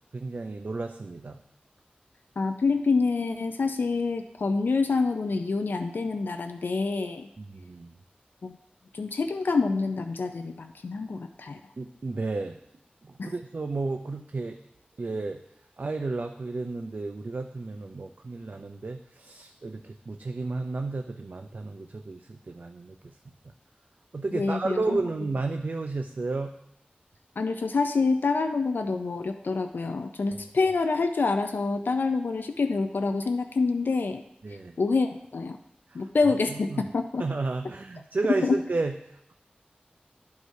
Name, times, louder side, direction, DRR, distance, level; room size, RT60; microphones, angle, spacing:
voice 1, 0.1-1.4 7.4-7.9 11.8-12.6 13.0-14.6 15.0-15.4 15.8-22.9 24.1-26.5 34.4-34.8 35.9-36.1 36.5-36.8 37.2-38.9, right 3 dB, 60° right, 5 dB, 0.4 m, -32 dB
voice 2, 2.4-7.3 8.4-8.6 8.9-11.6 13.2-13.3 24.3-25.0 27.4-34.2 34.8-35.6 35.9-37.2 38.3-38.6, left 4 dB, 80° left, 7 dB, 0.4 m, -27 dB
12.5 x 4.7 x 2.7 m, 0.82 s
wide cardioid pair, 50°, 3 cm